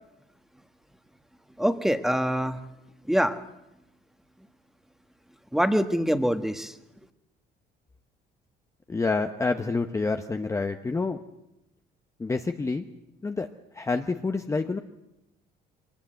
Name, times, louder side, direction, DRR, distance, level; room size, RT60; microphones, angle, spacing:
voice 1, 1.6-2.6 3.1-3.4 5.5-6.7, equal, ahead, 8 dB, 1.4 m, -24 dB
voice 2, 8.9-11.2 12.2-12.9 13.2-13.5 13.7-14.8, left 3 dB, 15° left, 6 dB, 0.8 m, -28 dB
23.0 x 19.0 x 7.9 m, 0.92 s
cardioid pair, 110°, 17 cm